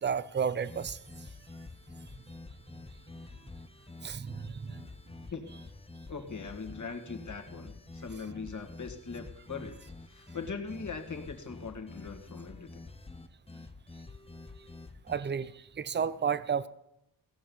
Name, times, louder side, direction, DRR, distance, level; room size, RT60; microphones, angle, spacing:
voice 1, 0.0-1.0 4.0-4.9 15.1-16.7, right 7 dB, 30° right, 16 dB, 0.5 m, -32 dB
sound 1, 0.6-15.2, left 3 dB, 15° left, 0.7 m, -48 dB
voice 2, 6.1-9.8 10.0-12.8, left 5 dB, 50° left, 4 dB, 1.9 m, -41 dB
16.5 x 7.8 x 7.1 m, 0.85 s
wide cardioid pair, 120°, 38 cm